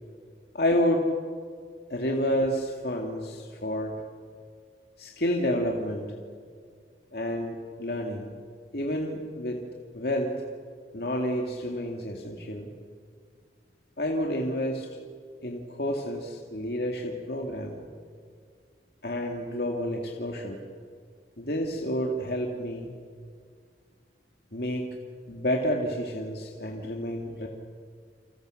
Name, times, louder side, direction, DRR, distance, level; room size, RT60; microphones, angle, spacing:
voice 1, 0.5-1.1 1.9-4.1 5.0-6.1 7.1-8.3 8.7-9.6 9.9-10.4 10.9-12.7 14.0-14.9 15.4-17.8 19.0-20.6 21.4-22.9 24.5-24.9 25.3-27.5, equal, 60° left, 1 dB, 2.4 m, -29 dB
29.5 x 27.5 x 6.5 m, 2.1 s
head